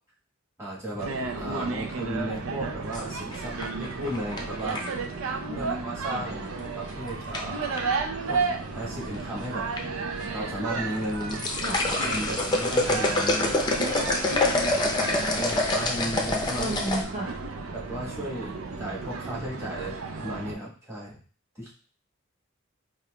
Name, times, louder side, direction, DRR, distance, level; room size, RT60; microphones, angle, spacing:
voice 1, 0.6-1.1 1.4-4.8 5.5-7.9 8.3-8.4 8.7-9.8 10.3-11.5 12.0-13.5 14.8-16.7 17.7-21.2 21.5-21.7, right 1 dB, 15° right, -6 dB, 1.2 m, -34 dB
sound 1, 1.0-20.6, right 4 dB, 85° right, 0.5 m, -33 dB
sound 2, 2.9-5.1 6.6-6.9 7.3-7.8 8.7-9.3 9.6-9.8 10.2-10.3 11.0-17.0, left 2 dB, 20° left, 0.6 m, -26 dB
voice 2, 5.5-6.3 11.6-11.8 16.6-17.3, right 2 dB, 35° right, -5 dB, 0.6 m, -33 dB
5.4 x 2.4 x 2.2 m, 0.41 s
head